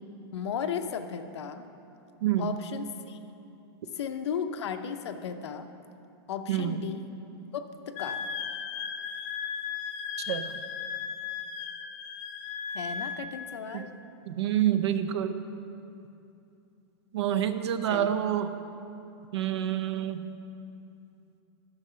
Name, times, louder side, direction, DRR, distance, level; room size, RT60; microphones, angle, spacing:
voice 1, 0.3-1.7 2.4-3.2 4.0-5.7 6.3-7.0 7.5-8.2 12.7-13.9 17.9-18.1, left 7 dB, 90° left, 8 dB, 0.7 m, -35 dB
voice 2, 2.2-2.5 6.5-6.9 10.2-10.5 13.7-13.9 14.3-15.4 17.1-18.5 19.3-20.2, right 11 dB, 85° right, 11 dB, 0.6 m, -27 dB
Wind instrument woodwind instrument, 8.0-13.3, left 6 dB, 30° left, 0.5 m, -36 dB
9.7 x 6.4 x 5.6 m, 2.8 s
supercardioid pair, 170°, 14 cm